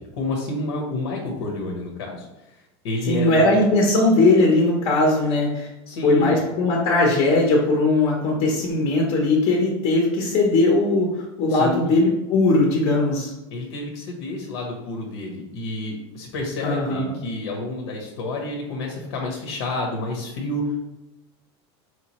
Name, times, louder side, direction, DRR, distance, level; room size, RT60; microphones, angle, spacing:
voice 1, 0.1-3.4 5.9-6.4 11.5-11.9 13.5-20.8, left 2 dB, 75° left, 0 dB, 0.9 m, -29 dB
voice 2, 3.1-5.7 6.0-13.3 16.6-17.1, left 2 dB, 35° left, -1 dB, 0.7 m, -19 dB
4.8 x 3.0 x 2.9 m, 0.98 s
supercardioid pair, 160°, 14 cm